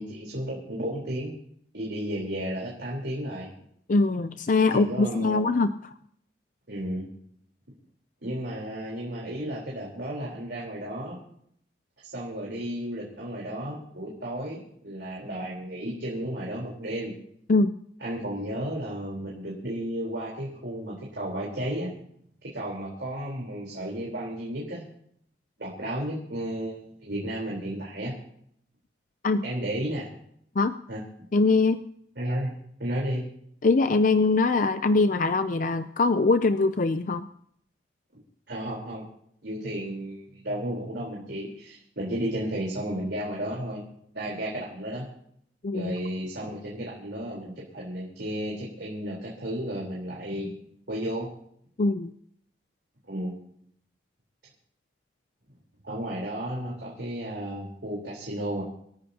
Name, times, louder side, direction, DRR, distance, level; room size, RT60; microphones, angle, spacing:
voice 1, 0.0-1.3 1.7-3.5 4.7-5.5 6.7-7.1 8.2-11.2 12.0-17.1 18.0-21.9 22.5-24.8 25.6-28.1 29.4-30.1 30.9-31.0 32.2-33.3 38.5-39.0 39.4-43.8 44.1-45.0 45.7-50.5 50.9-51.3 53.0-53.3 55.8-58.6, right 1 dB, 70° right, -4 dB, 3.9 m, -33 dB
voice 2, 3.9-5.9 17.5-17.7 29.2-29.4 30.6-30.8 31.3-31.8 33.6-37.3 45.6-45.9 51.8-52.1, left 3 dB, 45° left, 11 dB, 0.5 m, -22 dB
27.0 x 14.0 x 2.9 m, 0.68 s
head